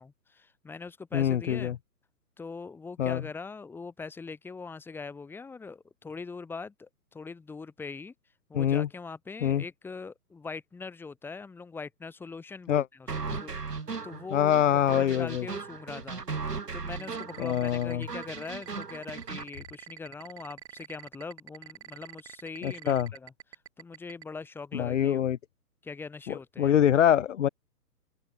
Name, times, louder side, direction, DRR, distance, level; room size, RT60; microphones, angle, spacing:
voice 1, 0.0-1.7 2.4-8.1 8.5-13.6 14.0-14.6 14.9-16.2 16.7-23.3 23.8-25.2 25.8-26.8, left 4 dB, 5° left, 1.4 m, -42 dB
voice 2, 1.1-1.7 3.0-3.2 8.5-8.9 9.4-9.6 12.7-12.8 14.3-15.4 17.4-18.1 22.6-23.1 24.7-25.4 26.3-27.5, left 10 dB, 50° left, 1.8 m, -25 dB
sound 1, 13.1-19.5, right 4 dB, 80° right, 3.4 m, -37 dB
sound 2, 16.9-24.2, right 11 dB, 45° right, 2.6 m, -45 dB
open air
figure-of-eight pair, 130°, 48 cm